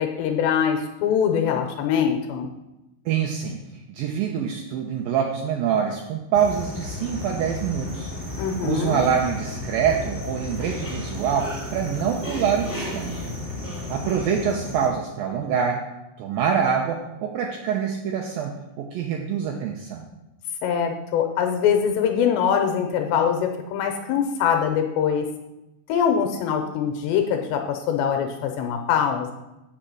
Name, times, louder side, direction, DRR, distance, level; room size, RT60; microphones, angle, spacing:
voice 1, 0.0-2.5 8.4-9.1 20.6-25.3 25.9-29.3, left 7 dB, 85° left, 4 dB, 3.0 m, -23 dB
voice 2, 3.1-3.6 3.9-8.1 8.6-13.3 13.9-15.8 16.2-20.1, right 7 dB, 85° right, 1 dB, 2.0 m, -25 dB
sound 1, 6.3-14.9, left 2 dB, 5° left, 1.8 m, -33 dB
8.5 x 5.6 x 7.7 m, 0.96 s
omnidirectional pair, 5.2 m